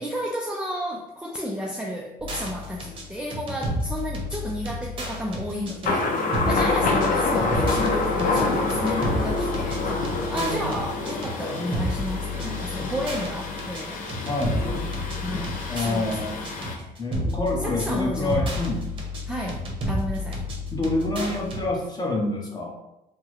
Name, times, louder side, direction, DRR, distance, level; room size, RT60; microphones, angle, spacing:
voice 1, 0.0-14.0 15.2-17.0 17.6-18.6 19.3-20.5, equal, 5° right, -2 dB, 0.3 m, -32 dB
sound 1, 2.2-21.6, left 1 dB, 30° right, 0.8 m, -31 dB
Thunder, 5.9-16.8, left 3 dB, 55° left, 0.6 m, -27 dB
voice 2, 7.2-7.8 10.3-10.8 14.2-14.6 15.7-16.3 17.0-18.8 20.7-22.7, left 2 dB, 25° left, -2 dB, 0.9 m, -27 dB
3.4 x 2.1 x 3.1 m, 0.90 s
cardioid pair, 110°, 17 cm